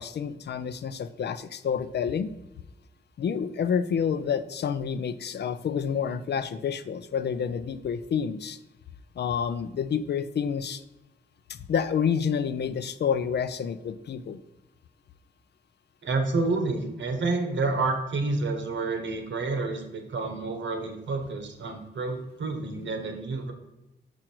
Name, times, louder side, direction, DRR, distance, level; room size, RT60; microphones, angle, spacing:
voice 1, 0.0-2.3 3.2-8.6 9.2-10.8 11.5-14.4, left 7 dB, 65° left, 13 dB, 0.4 m, -29 dB
voice 2, 16.0-23.5, right 3 dB, 85° right, 6 dB, 1.1 m, -29 dB
6.1 x 5.1 x 4.5 m, 0.99 s
wide cardioid pair, 175°, 19 cm